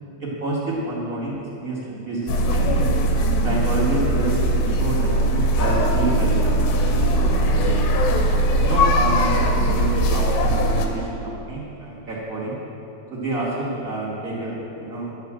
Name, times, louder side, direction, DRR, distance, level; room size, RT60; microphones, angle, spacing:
voice 1, 0.2-2.9 3.4-8.0 8.6-12.6 13.1-15.1, right 2 dB, 25° right, -6 dB, 2.1 m, -28 dB
sound 1, 2.3-10.9, right 1 dB, 75° left, 2.6 m, -20 dB
11.0 x 5.9 x 7.6 m, 2.8 s
omnidirectional pair, 4.4 m